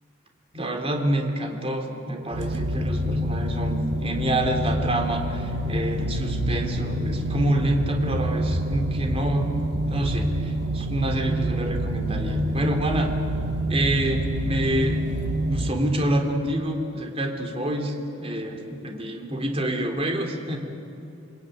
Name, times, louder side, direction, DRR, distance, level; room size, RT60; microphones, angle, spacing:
voice 1, 0.5-9.6 9.8-13.1 13.7-15.0 15.4-20.6, right 1 dB, 30° right, 3 dB, 3.2 m, -27 dB
sound 1, 2.3-15.7, right 1 dB, 65° right, 2.1 m, -27 dB
29.0 x 21.5 x 9.2 m, 2.8 s
head